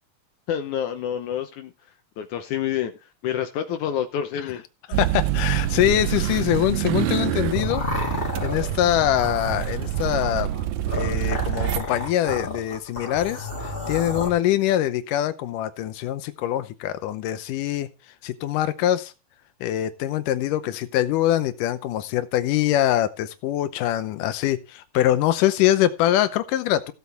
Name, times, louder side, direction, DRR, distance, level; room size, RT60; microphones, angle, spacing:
voice 1, 0.5-1.7 2.2-2.9 3.2-4.6, left 9 dB, 75° left, 2.3 m, -27 dB
voice 2, 4.9-7.8 8.4-10.5 10.9-17.9 18.2-19.1 19.6-26.9, left 13 dB, 90° left, 2.4 m, -23 dB
sound 1, 4.9-11.8, right 13 dB, 75° right, 2.1 m, -26 dB
sound 2, 7.1-14.3, left 2 dB, 20° left, 2.6 m, -32 dB
16.0 x 8.4 x 3.5 m
omnidirectional pair, 3.6 m